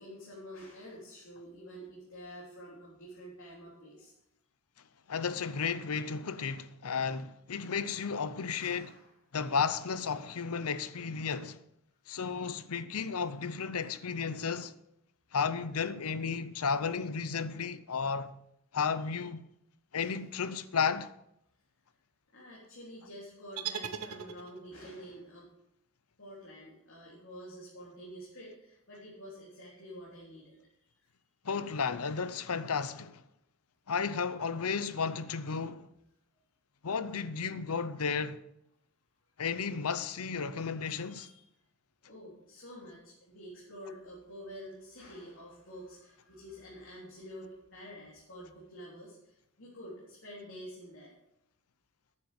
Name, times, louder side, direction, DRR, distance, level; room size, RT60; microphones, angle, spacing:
voice 1, 0.0-4.1 8.6-9.1 20.0-20.2 22.3-25.5 26.2-30.6 40.8-41.5 42.0-51.1, equal, 60° left, 3.6 m, -48 dB
voice 2, 5.1-8.9 9.3-11.6 12.1-14.7 15.3-18.3 18.7-19.4 19.9-21.1 31.4-33.2 33.9-35.9 36.8-38.4 39.4-41.3, left 5 dB, 85° left, 0.7 m, -33 dB
sound 1, 23.6-24.9, right 8 dB, 85° right, 1.0 m, -39 dB
11.5 x 9.9 x 5.2 m
head